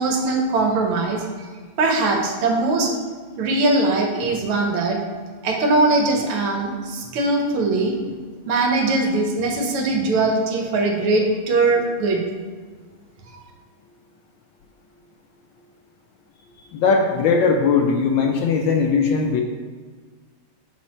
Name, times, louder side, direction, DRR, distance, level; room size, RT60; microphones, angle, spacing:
voice 1, 0.0-1.5 1.8-2.9 3.4-5.0 5.4-8.0 8.5-12.2, right 2 dB, 80° right, 1 dB, 1.8 m, -21 dB
voice 2, 16.7-19.4, left 5 dB, 75° left, 2 dB, 1.2 m, -19 dB
6.1 x 4.5 x 4.2 m, 1.5 s
omnidirectional pair, 2.4 m